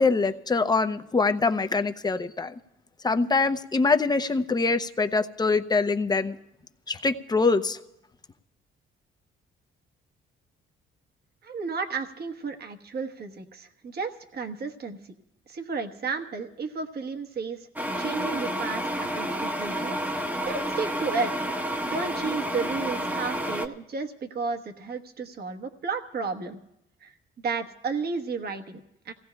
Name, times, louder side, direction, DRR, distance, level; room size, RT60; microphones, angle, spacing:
voice 1, 0.0-2.5 3.0-6.4 6.9-7.8, left 4 dB, 20° left, 9 dB, 0.7 m, -24 dB
voice 2, 11.4-15.0 15.5-17.7 18.0-21.4 21.8-26.6 27.0-27.1 27.4-29.1, right 4 dB, 55° right, 6 dB, 1.2 m, -33 dB
sound 1, 17.7-23.7, equal, 10° right, 0.9 m, -30 dB
28.0 x 17.0 x 2.3 m, 0.86 s
cardioid pair, 90°, 20 cm